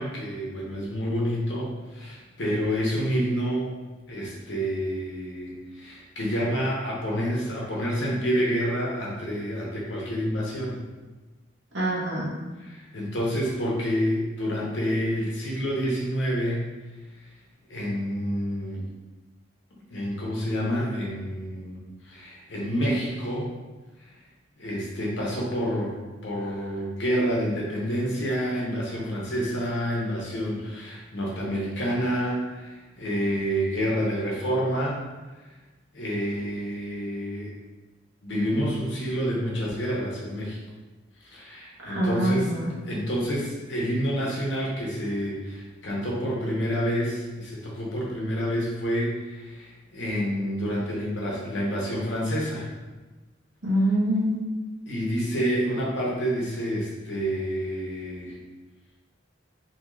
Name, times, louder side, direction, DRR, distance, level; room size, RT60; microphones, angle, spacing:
voice 1, 0.0-3.7 4.1-10.8 12.6-16.7 17.7-18.8 19.9-21.8 22.0-23.5 24.0-24.1 24.6-26.0 26.2-35.0 35.9-37.5 38.2-40.6 41.2-42.5 42.8-52.7 54.9-58.4, equal, 75° left, -4 dB, 0.8 m, -28 dB
voice 2, 11.7-12.3 41.9-42.7 53.6-54.4, right 1 dB, 75° right, -7 dB, 1.0 m, -24 dB
2.8 x 2.4 x 3.0 m, 1.2 s
head